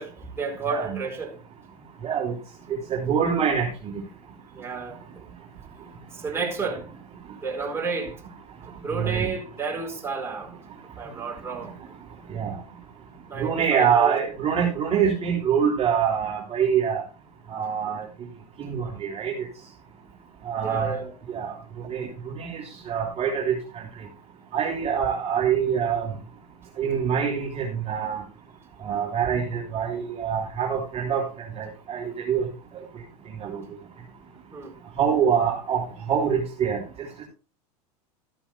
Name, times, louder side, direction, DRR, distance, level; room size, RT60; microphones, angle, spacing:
voice 1, 0.0-1.3 4.5-5.2 6.1-6.9 7.4-8.2 8.7-10.6 11.0-11.7 13.3-14.2 20.6-21.1 34.5-34.7, right 5 dB, 10° right, 4.4 m, -31 dB
voice 2, 0.7-1.0 2.0-2.3 2.9-4.0 6.3-6.4 8.9-9.3 12.3-12.6 13.4-17.0 17.5-18.1 18.6-19.3 20.5-20.9 21.3-21.5 21.9-22.1 22.4-23.6 24.5-26.2 26.8-28.2 28.8-32.5 33.4-33.6 35.0-36.8, right 7 dB, 30° right, 3.5 m, -25 dB
13.5 x 13.0 x 2.3 m
hypercardioid pair, 90°, 20 cm